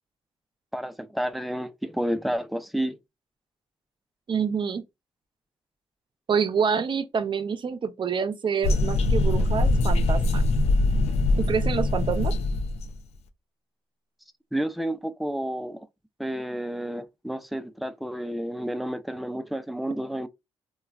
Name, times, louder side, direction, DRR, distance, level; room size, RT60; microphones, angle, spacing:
voice 1, 0.7-3.0 14.5-15.9 16.2-20.3, right 1 dB, ahead, 0.4 m, -30 dB
voice 2, 4.3-4.8 6.3-10.4 11.4-12.3, right 6 dB, 45° right, 0.6 m, -27 dB
sound 1, 8.6-13.0, left 2 dB, 70° left, 0.4 m, -23 dB
3.1 x 2.3 x 2.3 m
supercardioid pair, 60°, 11 cm